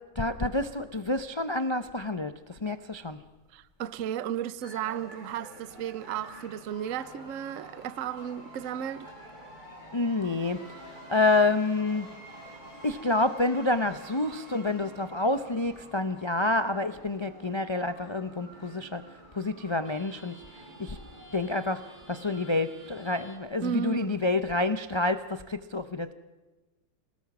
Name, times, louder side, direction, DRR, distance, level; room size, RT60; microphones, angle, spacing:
voice 1, 0.1-3.2 9.9-12.1 12.8-19.0 19.3-21.0 21.3-26.1, left 2 dB, 35° left, 0.4 m, -28 dB
voice 2, 3.5-9.1 23.6-24.2, right 9 dB, 55° right, 1.1 m, -34 dB
sound 1, 4.6-23.4, right 1 dB, 25° right, 6.1 m, -49 dB
27.0 x 18.5 x 6.0 m
omnidirectional pair, 1.8 m